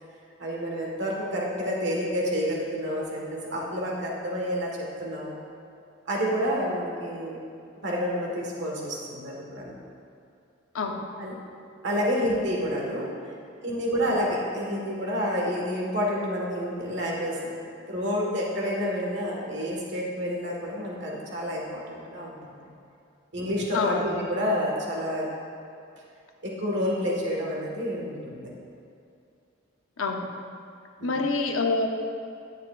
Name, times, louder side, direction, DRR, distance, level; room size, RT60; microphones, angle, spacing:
voice 1, 0.4-5.4 6.1-7.4 7.8-9.8 11.2-11.4 11.8-13.1 13.6-17.5 17.9-22.7 23.3-25.3 26.4-28.5 31.0-31.2, equal, 60° right, -3 dB, 1.6 m, -29 dB
voice 2, 10.7-11.1 23.7-24.0 30.0-30.3 31.0-31.9, left 3 dB, 90° left, 3 dB, 0.8 m, -26 dB
10.0 x 9.3 x 2.5 m, 2.5 s
head